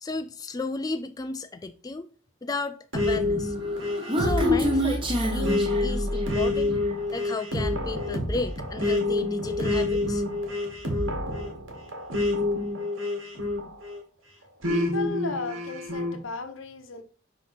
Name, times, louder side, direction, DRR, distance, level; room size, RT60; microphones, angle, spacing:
voice 1, 0.0-2.1 2.4-3.6 4.2-6.7 7.1-10.2, left 3 dB, 20° left, 0.4 m, -33 dB
sound 1, 2.9-14.0 14.6-16.2, left 2 dB, 90° right, 1.9 m, -28 dB
Human voice, 3.5-6.5, equal, 25° right, 1.3 m, -27 dB
voice 2, 14.7-17.0, left 3 dB, 80° left, 1.0 m, -34 dB
4.8 x 4.1 x 5.8 m
head